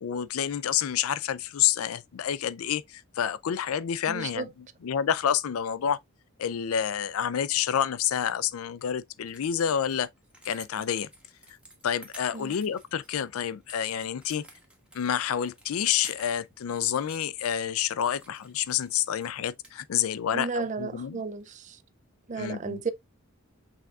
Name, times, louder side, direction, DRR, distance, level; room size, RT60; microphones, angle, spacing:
voice 1, 0.0-4.5 4.8-6.0 6.4-10.1 10.4-11.1 11.8-14.5 14.9-21.2 22.4-22.8, left 9 dB, 80° left, 0.4 m, -28 dB
voice 2, 4.1-4.5 12.3-12.6 20.3-21.8 22.3-22.9, right 4 dB, 35° right, 0.4 m, -33 dB
sound 1, 8.8-8.9 9.2-19.4 19.6-20.3 21.4-21.5, equal, 5° right, 1.0 m, -54 dB
5.9 x 3.5 x 2.4 m
head